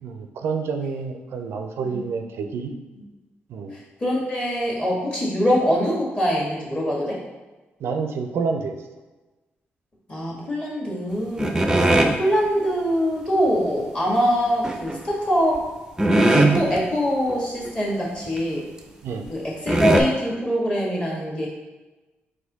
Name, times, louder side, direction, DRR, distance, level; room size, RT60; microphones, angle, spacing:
voice 1, 0.0-2.7 3.5-3.7 7.8-8.7 11.9-12.1 19.0-19.3, right 5 dB, 75° right, 5 dB, 0.4 m, -28 dB
voice 2, 4.0-7.2 10.1-11.9 12.2-15.6 16.2-18.6 19.3-21.5, equal, 25° left, -4 dB, 1.4 m, -23 dB
sound 1, 11.4-12.2 14.6-15.0 15.6-15.7 16.0-16.8 17.3-17.4 17.7-17.8 18.4-18.5 19.3-19.4 19.7-20.0, right 1 dB, 15° right, 0.5 m, -19 dB
4.1 x 2.6 x 3.9 m, 1.2 s
cardioid pair, 85°, 4 cm